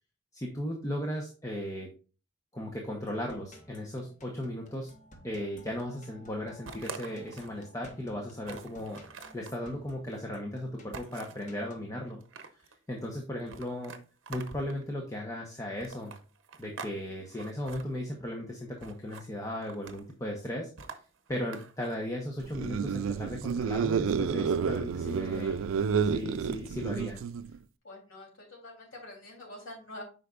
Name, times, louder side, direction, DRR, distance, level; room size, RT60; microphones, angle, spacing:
voice 1, 0.3-1.9 2.5-4.9 5.2-9.0 9.3-12.2 12.9-13.9 14.3-16.1 16.6-20.7 21.3-25.7 26.1-27.2, left 1 dB, 15° left, 0 dB, 0.9 m, -36 dB
sound 1, 3.1-11.9, left 1 dB, 40° left, 1.1 m, -56 dB
sound 2, 6.6-7.6 8.0-8.1 8.4-9.6 10.9-11.5 12.1-12.7 13.5-14.8 15.8-17.0 17.2-17.8 18.8-19.3 19.6-20.1 20.8-22.0, right 5 dB, 75° right, 0.8 m, -45 dB
sound 3, 22.5-27.6, right 6 dB, 90° right, 0.4 m, -30 dB
voice 2, 27.8-30.0, left 1 dB, 85° left, -1 dB, 3.1 m, -46 dB
8.1 x 5.3 x 2.4 m, 0.36 s
head